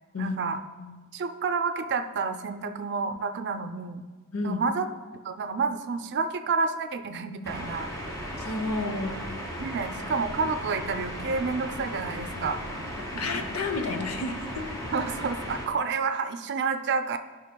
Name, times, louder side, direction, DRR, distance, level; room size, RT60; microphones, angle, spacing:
voice 1, 0.2-0.6 1.1-4.0 4.4-4.9 5.2-7.9 9.6-12.6 13.1-13.4 14.9-17.2, right 4 dB, 55° right, 8 dB, 0.4 m, -29 dB
voice 2, 4.3-4.6 8.4-9.2 13.0-14.7, left 3 dB, 80° left, 6 dB, 0.7 m, -31 dB
sound 1, 7.4-15.7, equal, 15° left, 1.3 m, -36 dB
14.0 x 5.5 x 2.2 m, 1.4 s
head